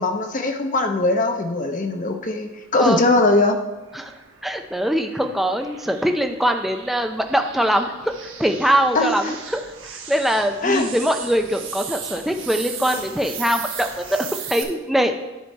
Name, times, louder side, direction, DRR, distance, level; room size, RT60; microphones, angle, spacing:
voice 1, 0.0-3.6 8.9-9.4 10.6-10.9, left 2 dB, 40° left, 5 dB, 0.8 m, -20 dB
sound 1, 3.2-14.6, right 7 dB, 80° right, 1.2 m, -37 dB
voice 2, 3.9-8.1 8.4-15.2, equal, ahead, 5 dB, 0.4 m, -22 dB
10.0 x 4.5 x 4.5 m, 1.1 s
head